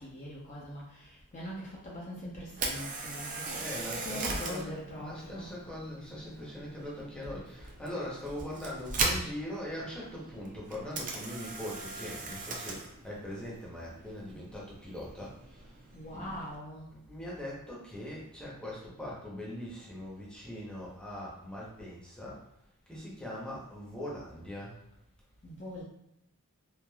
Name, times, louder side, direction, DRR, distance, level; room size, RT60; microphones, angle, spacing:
voice 1, 0.0-5.5 15.9-17.0 25.4-25.8, equal, 35° left, -5 dB, 0.5 m, -42 dB
Camera, 2.5-16.6, right 3 dB, 35° right, 0.4 m, -39 dB
voice 2, 3.3-16.4 16.9-22.4 22.9-24.8, left 1 dB, 5° left, -6 dB, 0.7 m, -41 dB
3.1 x 2.4 x 2.3 m, 0.80 s
head